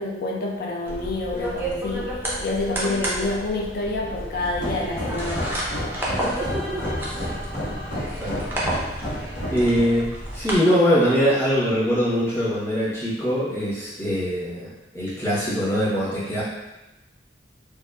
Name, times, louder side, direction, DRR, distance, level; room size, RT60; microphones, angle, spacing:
voice 1, 0.0-2.1 2.4-5.4, left 2 dB, 55° left, -1 dB, 0.4 m, -28 dB
sound 1, 0.9-10.5, right 1 dB, 10° right, 0.4 m, -31 dB
sound 2, 4.4-9.8, equal, 80° left, 0.8 m, -31 dB
voice 2, 9.5-10.1 10.3-16.4, equal, 15° left, -10 dB, 0.9 m, -22 dB
2.7 x 2.0 x 2.2 m, 1.0 s
head